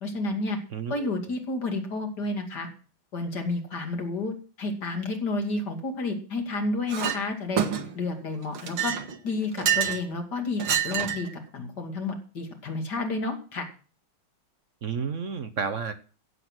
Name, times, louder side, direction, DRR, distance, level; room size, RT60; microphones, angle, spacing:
voice 1, 0.0-0.6 0.9-2.7 3.1-7.6 7.9-8.9 9.2-11.3 11.5-13.7, left 2 dB, 50° left, 4 dB, 3.0 m, -30 dB
voice 2, 0.7-1.1 14.8-15.9, right 6 dB, 50° right, 10 dB, 0.9 m, -31 dB
Chink clink, 6.9-7.2 7.6-8.1 8.5-10.0 10.6-11.3, right 9 dB, 80° right, 2.3 m, -27 dB
15.5 x 8.2 x 6.2 m, 0.39 s
omnidirectional pair, 2.3 m